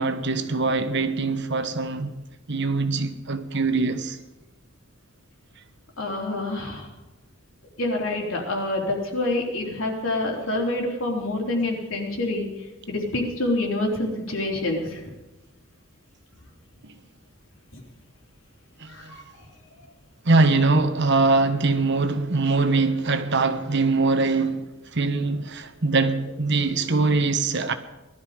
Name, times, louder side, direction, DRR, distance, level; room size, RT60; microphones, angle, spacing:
voice 1, 0.0-2.1 2.5-4.2 16.8-16.9 18.8-19.1 20.2-27.7, right 3 dB, 55° right, 1.2 m, -23 dB
voice 2, 6.0-6.9 7.8-12.5 12.9-15.0 17.7-17.8 18.9-19.2, left 2 dB, 70° left, 3.6 m, -27 dB
19.0 x 12.5 x 5.1 m
head